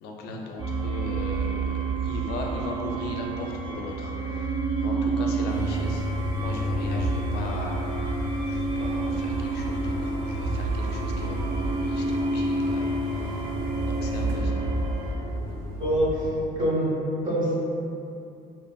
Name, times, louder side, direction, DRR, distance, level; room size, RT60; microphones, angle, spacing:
voice 1, 0.0-13.6 13.8-14.7, left 2 dB, 75° left, 0 dB, 0.4 m, -38 dB
sound 1, 0.6-15.1, right 3 dB, 30° right, 0.3 m, -29 dB
sound 2, 5.5-16.3, left 2 dB, 80° right, 0.6 m, -33 dB
voice 2, 15.8-16.9 17.2-17.5, equal, 50° right, -8 dB, 1.0 m, -25 dB
2.9 x 2.4 x 2.2 m, 2.7 s
cardioid pair, 110°, 17 cm